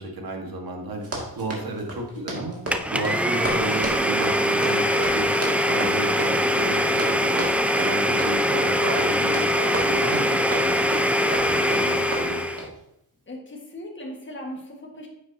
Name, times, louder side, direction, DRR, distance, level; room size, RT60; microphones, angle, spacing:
voice 1, 0.0-2.6 2.9-7.4 7.8-10.9 11.3-12.5, right 2 dB, 70° right, 2 dB, 1.8 m, -33 dB
Run, 1.0-12.8, right 1 dB, 40° right, 2.4 m, -34 dB
Domestic sounds home sounds, 2.7-12.7, equal, 5° right, 0.4 m, -22 dB
voice 2, 8.0-8.4 13.3-15.1, left 1 dB, 30° left, 0 dB, 1.7 m, -37 dB
9.5 x 7.6 x 2.9 m, 0.79 s
wide cardioid pair, 120°, 37 cm